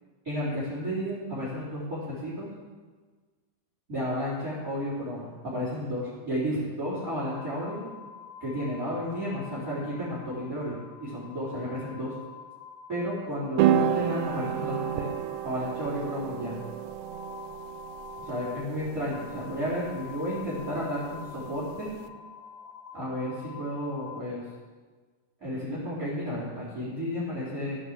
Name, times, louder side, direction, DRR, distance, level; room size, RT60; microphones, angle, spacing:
voice 1, 0.2-2.5 3.9-7.8 8.4-12.1 12.9-15.1 15.4-16.5 18.2-21.9 22.9-24.5 25.4-27.8, equal, 20° right, -8 dB, 3.9 m, -32 dB
sound 1, 6.9-24.2, left 7 dB, 90° left, 3.1 m, -47 dB
sound 2, 13.6-22.0, right 10 dB, 90° right, 2.9 m, -31 dB
15.0 x 9.5 x 7.4 m, 1.4 s
omnidirectional pair, 5.1 m